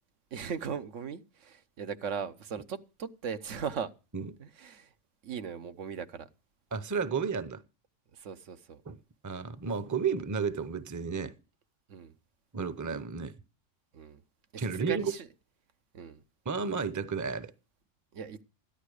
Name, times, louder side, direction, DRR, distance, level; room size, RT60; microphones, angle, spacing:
voice 1, 0.3-3.9 4.4-4.9 5.2-6.3 8.1-8.8 11.9-12.1 13.9-14.2 14.5-15.3 15.9-16.2 18.1-18.4, right 6 dB, 85° right, 1.3 m, -38 dB
voice 2, 6.7-7.6 8.9-9.0 9.2-11.3 12.5-13.4 14.6-15.1 16.5-17.5, right 5 dB, 20° right, 0.6 m, -32 dB
14.0 x 11.0 x 4.9 m
omnidirectional pair, 1.2 m